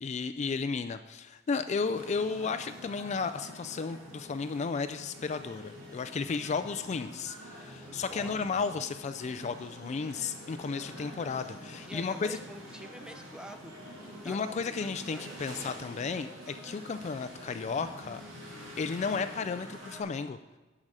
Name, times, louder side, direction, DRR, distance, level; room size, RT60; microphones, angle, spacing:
voice 1, 0.0-12.4 14.2-18.2 18.8-20.4, left 5 dB, 35° left, 10 dB, 0.3 m, -33 dB
sound 1, 1.8-20.0, equal, 80° right, 2.8 m, -47 dB
voice 2, 7.8-8.5 11.9-13.7 14.2-15.8, equal, 5° right, 7 dB, 0.6 m, -47 dB
10.5 x 4.9 x 7.5 m, 1.2 s
head